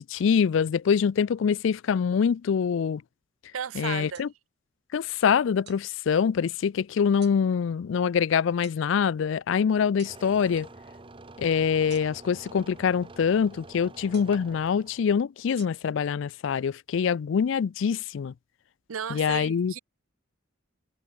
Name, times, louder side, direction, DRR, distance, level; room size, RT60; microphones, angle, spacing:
voice 1, 0.0-3.0 3.8-4.3 4.9-10.7 11.4-18.3 19.1-19.7, left 7 dB, 65° left, 0.3 m, -25 dB
voice 2, 3.5-4.2 18.9-19.8, right 7 dB, 90° right, 0.6 m, -34 dB
sound 1, 4.1-4.3 5.7-5.8 7.2-7.4 8.6-8.8 10.0-10.2 11.9-12.3 14.1-14.4 15.6-15.7, right 10 dB, 55° right, 5.0 m, -49 dB
sound 2, 10.0-15.0, right 2 dB, 25° right, 1.1 m, -47 dB
head